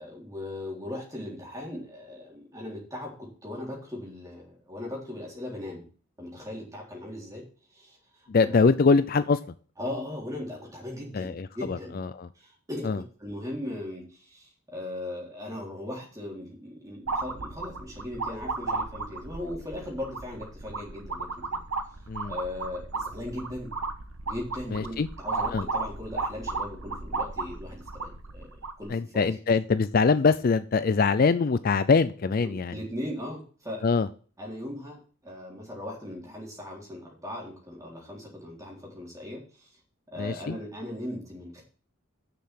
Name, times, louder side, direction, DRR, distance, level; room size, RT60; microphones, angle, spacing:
voice 1, 0.0-5.8 6.2-7.4 7.7-8.7 9.8-12.0 12.4-21.6 22.3-23.7 24.3-28.5 28.8-29.4 32.4-33.8 34.4-39.7 40.1-41.6, left 1 dB, 15° right, -3 dB, 3.8 m, -38 dB
voice 2, 8.3-9.4 11.1-12.3 12.8-13.0 22.1-22.4 24.7-25.1 25.5-25.7 28.9-32.7 33.8-34.1 40.2-40.6, left 4 dB, 40° left, 13 dB, 0.4 m, -23 dB
sound 1, 17.1-28.8, right 3 dB, 80° right, 1.2 m, -34 dB
6.8 x 6.6 x 7.7 m, 0.41 s
head